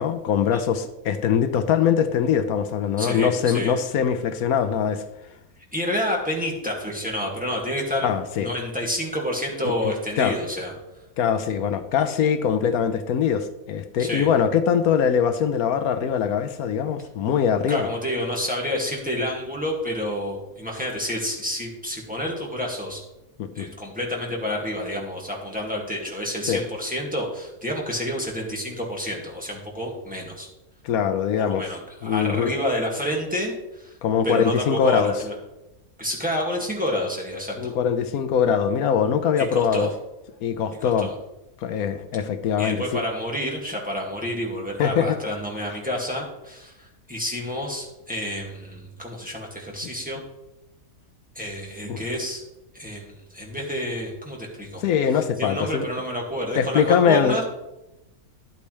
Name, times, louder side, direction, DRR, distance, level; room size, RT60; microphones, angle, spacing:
voice 1, 0.0-5.0 8.0-8.5 9.6-10.3 11.2-17.9 23.4-23.7 26.5-26.6 30.8-31.6 32.0-32.5 34.0-35.1 37.6-39.9 40.4-41.1 41.6-43.0 44.8-45.2 51.9-52.0 54.8-55.8 56.5-57.4, left 7 dB, 80° left, 10 dB, 1.2 m, -22 dB
voice 2, 3.0-3.7 5.7-8.1 8.4-10.7 14.0-14.3 17.7-23.0 23.5-30.5 31.4-33.9 34.2-35.3 36.0-37.7 39.4-39.9 40.8-41.1 42.6-50.2 51.4-52.4 52.7-54.8 55.4-57.4, equal, 5° right, -2 dB, 2.1 m, -29 dB
12.0 x 8.3 x 3.3 m, 0.93 s
omnidirectional pair, 1.5 m